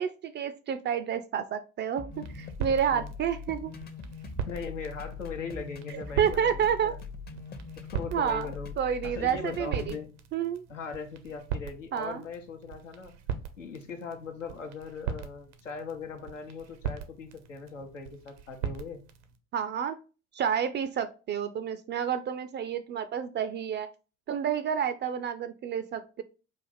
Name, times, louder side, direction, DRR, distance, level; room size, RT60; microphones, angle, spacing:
voice 1, 0.0-3.7 6.2-6.9 8.1-8.5 8.8-10.0 10.3-10.6 11.9-12.2 19.5-20.0 20.3-23.9 24.3-26.2, right 8 dB, 30° right, 10 dB, 0.4 m, -29 dB
sound 1, 2.0-10.0, left 4 dB, 25° left, 0.6 m, -42 dB
sound 2, 2.1-19.4, right 7 dB, 75° right, 0.7 m, -40 dB
voice 2, 2.6-3.1 4.5-7.0 7.8-8.7 9.0-10.1 10.7-13.2 13.6-19.0, left 5 dB, 85° left, 5 dB, 0.8 m, -40 dB
4.2 x 2.5 x 4.0 m, 0.33 s
figure-of-eight pair, 60°, 37 cm